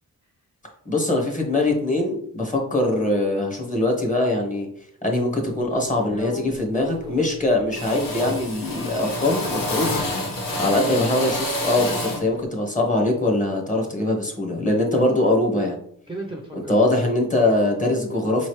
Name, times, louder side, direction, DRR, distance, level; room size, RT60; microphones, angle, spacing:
voice 1, 0.9-4.7 5.0-9.9 10.6-15.8 16.5-18.5, left 2 dB, 25° left, 1 dB, 0.9 m, -22 dB
Drill, 5.4-5.6 6.0-6.5 6.8-7.4 7.7-12.3, left 1 dB, 85° left, 1.1 m, -29 dB
voice 2, 9.7-11.0 16.1-16.9, right 1 dB, 15° right, 0 dB, 0.5 m, -37 dB
4.8 x 3.1 x 3.1 m, 0.69 s
wide cardioid pair, 145°, 33 cm